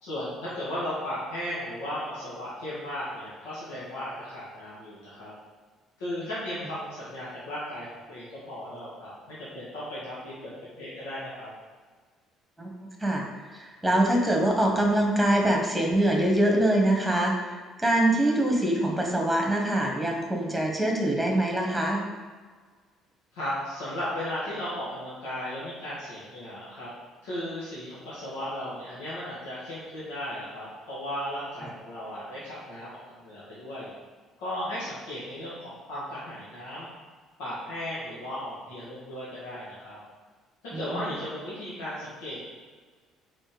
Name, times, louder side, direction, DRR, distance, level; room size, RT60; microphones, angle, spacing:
voice 1, 0.0-5.3 6.0-10.5 10.8-11.5 23.3-26.9 27.2-33.9 34.4-36.9 37.4-40.0 40.6-42.4, left 1 dB, 90° left, -10 dB, 1.8 m, -36 dB
voice 2, 13.5-22.0 40.7-41.2, right 1 dB, 5° right, 0 dB, 1.4 m, -24 dB
4.4 x 4.3 x 5.1 m, 1.5 s
supercardioid pair, 80°, 0 cm